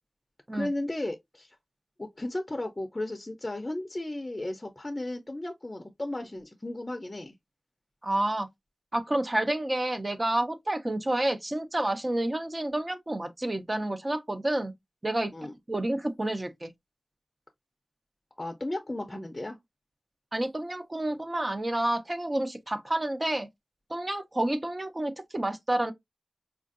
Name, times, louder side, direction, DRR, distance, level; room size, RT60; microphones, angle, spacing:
voice 1, 0.5-1.5 2.0-7.3 15.3-15.5 18.4-19.6, left 1 dB, 25° left, 0.5 m, -34 dB
voice 2, 8.0-8.5 8.9-14.7 15.0-15.3 15.7-16.7 20.3-23.5 23.9-25.9, right 1 dB, 30° right, 0.6 m, -29 dB
4.4 x 2.5 x 2.4 m
wide cardioid pair, 90°, 0 cm